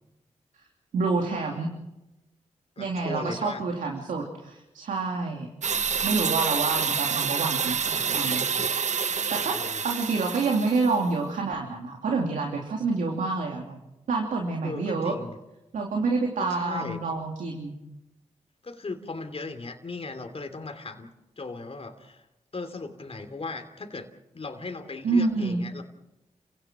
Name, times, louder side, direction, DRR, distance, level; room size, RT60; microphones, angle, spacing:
voice 1, 0.9-1.7 2.8-5.5 6.0-8.4 9.3-9.6 9.8-13.8 14.1-15.2 15.7-17.7 25.0-25.6, right 3 dB, 85° right, 1 dB, 2.9 m, -27 dB
voice 2, 2.8-3.6 9.3-9.8 14.6-15.4 16.5-17.0 18.6-21.1 21.4-22.2 22.5-24.1 24.3-25.8, left 3 dB, 50° left, 6 dB, 3.1 m, -37 dB
sound 1, 5.6-11.0, right 6 dB, 65° right, 1.1 m, -28 dB
29.5 x 17.0 x 6.2 m, 0.93 s
cardioid pair, 45°, 13 cm